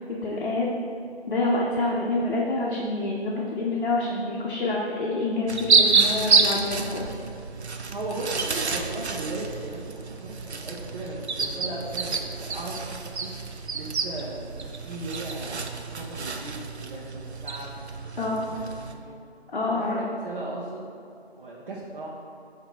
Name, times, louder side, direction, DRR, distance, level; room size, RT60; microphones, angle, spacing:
voice 1, 0.1-0.7 1.3-7.1 18.2-18.5 19.5-20.0, left 2 dB, 55° left, -4 dB, 0.9 m, -27 dB
sound 1, 5.5-18.9, right 4 dB, 85° right, 0.7 m, -28 dB
voice 2, 7.9-13.3 13.7-18.4 18.9-19.2 19.7-20.9 21.4-22.1, right 2 dB, 50° right, -5 dB, 1.0 m, -37 dB
7.8 x 2.9 x 4.6 m, 2.6 s
figure-of-eight pair, 170°, 32 cm